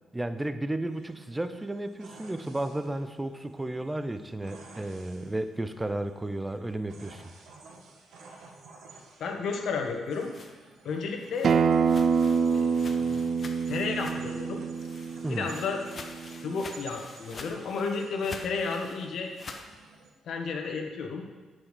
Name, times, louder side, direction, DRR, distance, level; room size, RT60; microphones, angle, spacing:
voice 1, 0.1-7.3 15.2-15.5, right 1 dB, 15° right, 10 dB, 0.7 m, -33 dB
sound 1, 0.9-20.1, right 4 dB, 80° right, 1.7 m, -53 dB
voice 2, 9.2-10.3 10.8-11.5 12.5-12.7 13.0-13.2 13.7-14.6 15.3-15.8 16.4-19.3 20.2-21.3, left 4 dB, 70° left, 3 dB, 1.6 m, -32 dB
sound 2, 10.1-14.4 14.7-19.7, left 4 dB, 40° left, 1.0 m, -47 dB
Acoustic guitar, 11.4-16.6, right 5 dB, 50° right, 0.4 m, -26 dB
8.5 x 7.3 x 6.8 m, 1.3 s
cardioid pair, 90°, 0 cm